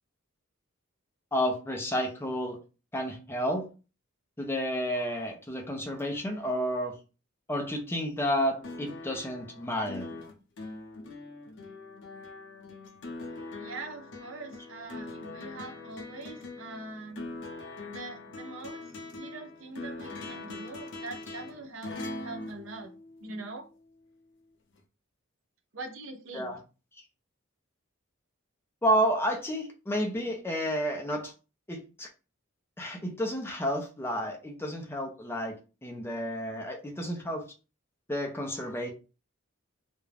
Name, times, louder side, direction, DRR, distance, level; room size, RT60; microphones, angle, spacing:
voice 1, 1.3-2.6 2.9-3.7 4.4-7.0 7.5-10.1 26.3-26.6 28.8-31.3 31.7-32.1 32.8-37.4 38.1-38.9, equal, 10° left, 0.4 m, -31 dB
sound 1, 8.6-23.5 24.8-24.9, left 2 dB, 60° left, 0.6 m, -42 dB
voice 2, 13.6-17.3 17.9-22.9 23.2-23.6 25.7-26.5, right 3 dB, 65° right, 0.6 m, -43 dB
2.4 x 2.1 x 3.2 m
head